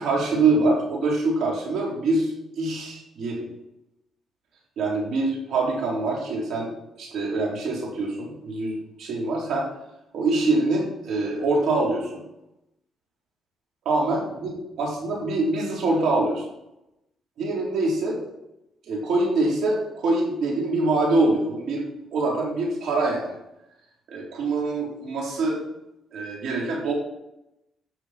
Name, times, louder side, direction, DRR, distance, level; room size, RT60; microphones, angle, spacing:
voice 1, 0.0-3.5 4.8-6.7 7.0-9.7 10.1-12.2 13.9-16.5 17.4-18.2 18.9-21.8 22.1-23.4 24.1-25.6 26.1-26.9, right 2 dB, 75° right, -2 dB, 3.7 m, -24 dB
11.5 x 6.8 x 4.5 m, 0.89 s
cardioid pair, 90°, 0 cm